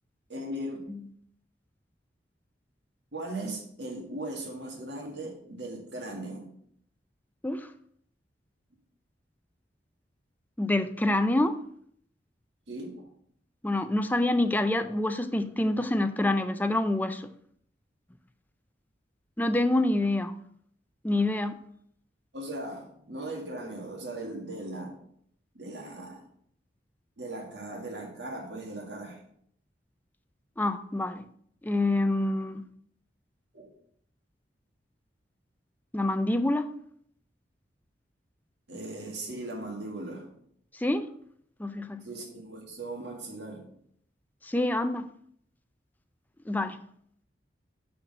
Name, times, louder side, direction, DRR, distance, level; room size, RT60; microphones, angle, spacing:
voice 1, 0.3-0.9 3.1-6.6 12.7-13.1 22.3-25.0 25.5-26.2 27.2-29.2 33.5-33.7 38.7-40.4 42.0-43.7, right 1 dB, 80° right, 2.0 m, -38 dB
voice 2, 10.6-11.6 13.6-17.3 19.4-20.4 21.0-21.6 30.6-31.3 31.6-32.6 35.9-36.7 40.8-41.1 41.6-42.0 44.4-45.1 46.5-46.8, left 1 dB, 10° left, 0.4 m, -26 dB
6.0 x 5.0 x 6.5 m
head